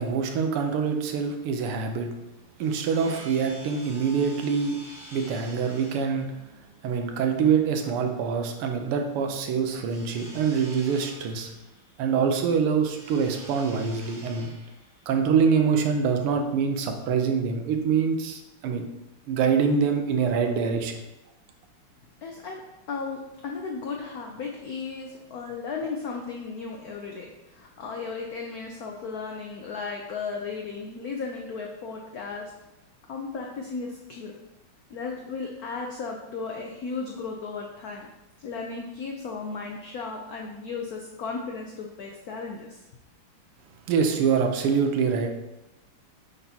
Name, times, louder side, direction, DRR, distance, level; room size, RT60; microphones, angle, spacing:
voice 1, 0.0-2.2 2.6-4.8 5.1-6.5 6.8-11.5 12.0-14.5 15.1-18.9 19.3-21.0 43.9-45.3, right 6 dB, 85° right, 4 dB, 1.7 m, -25 dB
sound 1, 2.3-16.8, right 1 dB, 60° right, 3.0 m, -49 dB
voice 2, 22.2-22.6 22.9-32.5 33.1-34.3 34.9-38.1 38.4-42.8, left 4 dB, 85° left, 0 dB, 0.8 m, -35 dB
8.7 x 4.0 x 2.8 m, 0.96 s
omnidirectional pair, 2.4 m